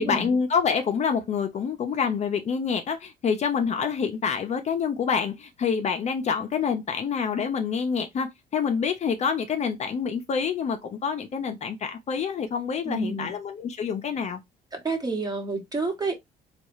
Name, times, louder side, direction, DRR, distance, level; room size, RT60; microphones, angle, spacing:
voice 1, 0.0-14.4, left 6 dB, 40° left, 0.6 m, -27 dB
voice 2, 12.8-13.3 14.7-16.3, right 3 dB, 20° right, 1.2 m, -29 dB
4.2 x 2.3 x 3.1 m
cardioid pair, 110°, 17 cm